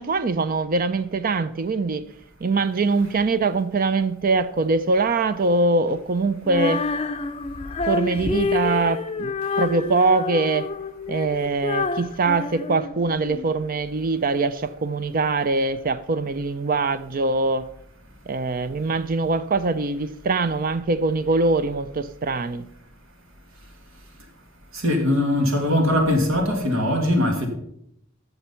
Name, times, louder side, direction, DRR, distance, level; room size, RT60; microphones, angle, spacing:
voice 1, 0.0-2.1 2.4-6.8 7.8-10.7 11.1-17.7 18.3-22.6, right 3 dB, 45° right, 0.5 m, -23 dB
Female singing, 6.4-13.5, left 3 dB, 30° left, 0.5 m, -28 dB
voice 2, 24.7-27.5, left 1 dB, 90° right, 2.4 m, -21 dB
12.0 x 6.9 x 5.7 m
head